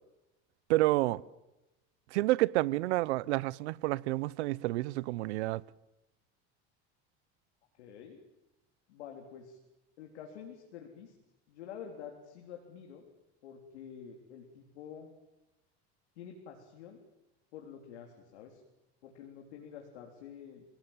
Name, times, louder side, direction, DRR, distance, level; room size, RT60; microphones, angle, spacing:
voice 1, 0.7-1.2 2.1-5.6, right 18 dB, 85° right, 0.9 m, -29 dB
voice 2, 7.8-8.2 8.9-9.6 10.0-11.1 11.5-13.0 13.4-15.1 16.2-17.0 17.5-18.6 19.0-20.6, left 8 dB, 85° left, 3.9 m, -48 dB
29.0 x 18.0 x 9.1 m
hypercardioid pair, 85°, 33 cm